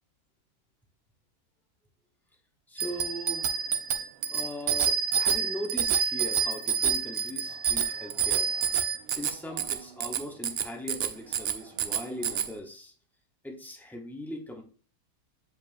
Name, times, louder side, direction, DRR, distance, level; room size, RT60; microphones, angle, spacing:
voice 1, 2.7-3.5 4.3-8.5 9.2-12.9 13.4-14.6, left 1 dB, ahead, 1 dB, 0.4 m, -39 dB
Bicycle bell, 2.8-12.5, right 7 dB, 85° right, 0.5 m, -28 dB
7.8 x 4.8 x 2.5 m, 0.39 s
omnidirectional pair, 1.6 m